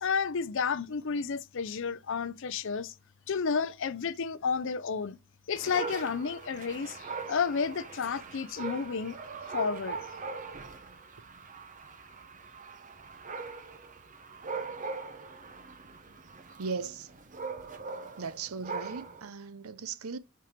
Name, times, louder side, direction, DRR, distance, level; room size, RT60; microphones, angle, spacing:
voice 1, 0.0-2.9 3.3-5.2 5.5-9.2 9.5-10.0, left 5 dB, 60° left, 0.5 m, -31 dB
Dog, 5.5-19.3, right 4 dB, 35° right, 0.9 m, -41 dB
voice 2, 16.6-17.1 18.2-20.2, right 5 dB, 75° right, 0.6 m, -37 dB
5.7 x 4.8 x 5.1 m
head